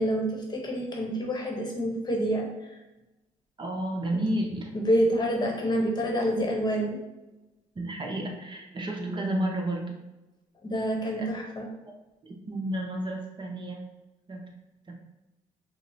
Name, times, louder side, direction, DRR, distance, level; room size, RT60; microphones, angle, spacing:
voice 1, 0.0-2.5 4.1-4.2 4.7-7.0 10.6-11.7, equal, 30° left, 0 dB, 0.9 m, -27 dB
voice 2, 3.6-4.7 7.8-10.0 11.2-11.3 12.2-13.9 14.3-14.5 14.9-15.0, right 1 dB, 35° right, 1 dB, 0.7 m, -31 dB
5.2 x 2.0 x 2.8 m, 1.0 s
supercardioid pair, 75°, 14 cm